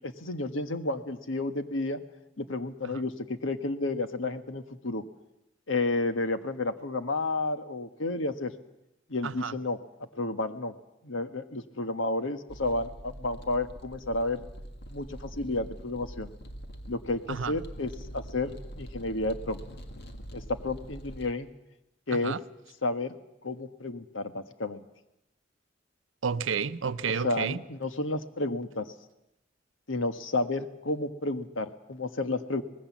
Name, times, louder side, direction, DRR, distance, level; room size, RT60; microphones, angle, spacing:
voice 1, 0.0-2.0 2.4-5.0 5.7-8.5 9.1-9.8 10.1-10.7 11.0-14.4 14.9-16.3 16.9-18.5 18.8-19.6 20.3-21.5 22.1-22.4 22.8-23.1 23.4-24.8 27.2-28.9 29.9-32.6, left 2 dB, 85° left, 9 dB, 1.4 m, -31 dB
voice 2, 9.2-9.5 17.3-17.6 22.1-22.4 26.2-27.6, right 6 dB, 85° right, 13 dB, 0.7 m, -31 dB
sound 1, 12.5-21.3, equal, 60° left, 1.9 m, -44 dB
24.5 x 19.5 x 7.3 m, 0.88 s
head